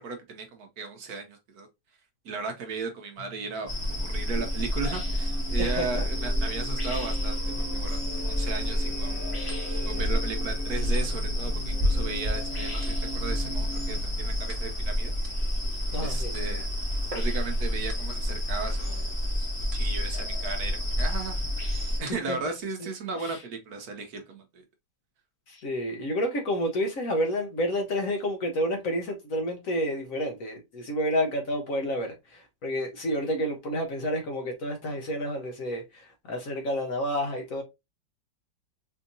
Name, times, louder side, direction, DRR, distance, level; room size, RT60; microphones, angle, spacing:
voice 1, 0.0-1.7 2.2-3.7 4.0-9.3 9.8-15.1 16.0-16.7 17.1-21.4 21.6-24.6, right 4 dB, 65° right, 1.0 m, -36 dB
sound 1, 3.2-14.5, equal, 80° left, 0.5 m, -41 dB
sound 2, 3.7-22.0, equal, 20° left, 0.9 m, -29 dB
voice 2, 5.6-5.9 15.9-16.3 22.3-22.5 22.8-22.9 23.2-23.4 25.5-37.6, equal, 60° left, 1.0 m, -30 dB
sound 3, 9.5-22.6, right 2 dB, 25° right, 0.8 m, -49 dB
4.4 x 2.7 x 2.5 m
omnidirectional pair, 2.0 m